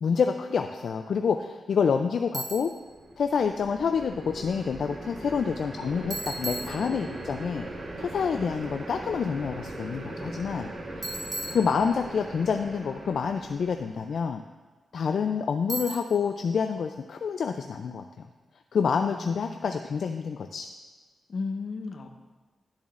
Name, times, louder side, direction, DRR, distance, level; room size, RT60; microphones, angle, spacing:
voice 1, 0.0-2.7 3.2-7.6 8.0-10.7 11.0-11.2 11.5-14.4 14.9-18.1 18.7-20.7, left 6 dB, 70° left, 6 dB, 0.3 m, -28 dB
Bicycle, 2.3-2.9 6.1-7.3 11.0-12.3 15.7-16.4, right 1 dB, 25° right, 1.4 m, -37 dB
sound 1, 2.8-14.2, right 1 dB, 50° right, 1.3 m, -40 dB
voice 2, 19.1-19.8 21.3-22.1, left 4 dB, 55° left, 5 dB, 0.8 m, -35 dB
12.0 x 7.1 x 2.5 m, 1.4 s
wide cardioid pair, 105°, 0 cm